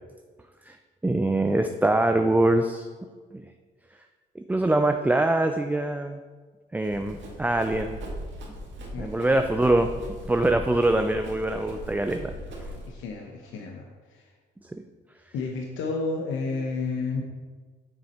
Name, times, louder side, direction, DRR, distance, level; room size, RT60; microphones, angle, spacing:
voice 1, 1.0-2.9 3.3-3.4 4.4-6.2 6.7-8.0 9.0-9.9 10.3-12.3 14.7-14.8, right 2 dB, 10° right, 6 dB, 0.4 m, -23 dB
Run, 6.8-12.9, right 1 dB, 70° right, 2.0 m, -39 dB
voice 2, 8.9-9.6 12.9-14.3 15.3-17.2, left 3 dB, 80° left, 1 dB, 0.9 m, -32 dB
7.2 x 6.3 x 4.3 m, 1.5 s
cardioid pair, 90°, 20 cm